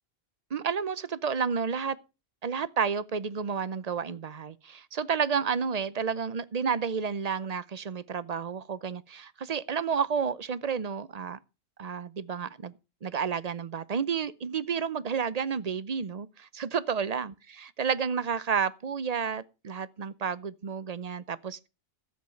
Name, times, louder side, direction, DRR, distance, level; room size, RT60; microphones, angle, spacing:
voice 1, 0.5-2.0 2.4-11.4 11.8-12.7 13.0-21.7, right 6 dB, 45° right, 0.7 m, -31 dB
13.5 x 7.5 x 5.7 m
omnidirectional pair, 1.1 m